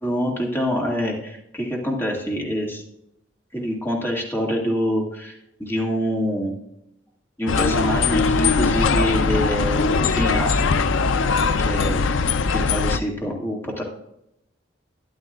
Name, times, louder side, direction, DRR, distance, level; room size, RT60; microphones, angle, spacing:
voice 1, 0.0-2.8 3.5-6.6 7.4-10.9 11.6-12.1 12.5-13.8, equal, 10° left, -2 dB, 2.0 m, -26 dB
sound 1, 7.5-13.0, left 4 dB, 75° left, 0.5 m, -20 dB
13.5 x 10.5 x 2.4 m, 0.81 s
head